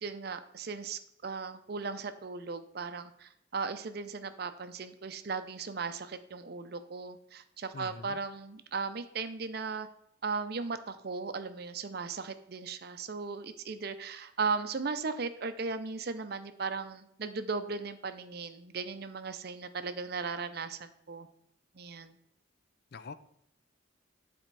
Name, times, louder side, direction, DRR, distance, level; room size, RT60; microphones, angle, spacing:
voice 1, 0.0-9.9 10.2-21.3 21.7-22.2, right 4 dB, 50° right, 11 dB, 0.5 m, -37 dB
voice 2, 7.7-8.2 22.9-23.2, left 4 dB, 50° left, 13 dB, 0.4 m, -44 dB
9.2 x 4.3 x 4.6 m, 0.78 s
head